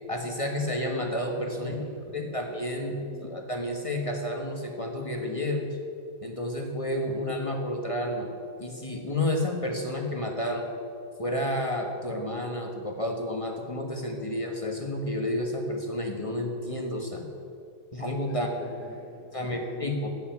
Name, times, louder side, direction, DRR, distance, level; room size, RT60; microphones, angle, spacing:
voice 1, 0.1-1.7 2.1-5.8 6.2-8.3 8.6-10.7 11.2-17.2 17.9-18.5 19.3-20.1, left 1 dB, 20° left, 2 dB, 1.2 m, -30 dB
voice 2, 1.5-2.3 2.9-3.3 18.3-20.0, left 1 dB, 50° left, -2 dB, 2.7 m, -47 dB
15.5 x 7.1 x 9.4 m, 2.5 s
omnidirectional pair, 2.4 m